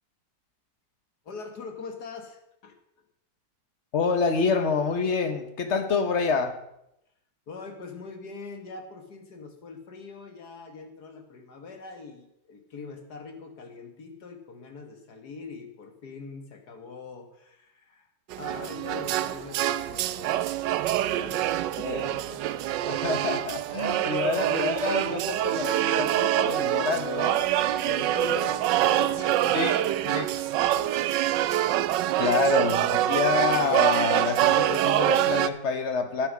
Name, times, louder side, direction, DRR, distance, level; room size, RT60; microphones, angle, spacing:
voice 1, 1.2-2.8 7.5-18.1 18.4-20.6 21.0-22.8 23.9-24.1 27.8-30.9 32.1-32.5, left 4 dB, 60° left, 5 dB, 2.0 m, -43 dB
voice 2, 3.9-6.6 21.8-22.1 22.8-27.4 29.5-30.3 32.2-36.3, left 5 dB, 45° left, 8 dB, 1.3 m, -27 dB
sound 1, 18.3-35.5, right 13 dB, 80° right, 1.2 m, -25 dB
11.5 x 9.0 x 6.2 m, 0.81 s
omnidirectional pair, 1.9 m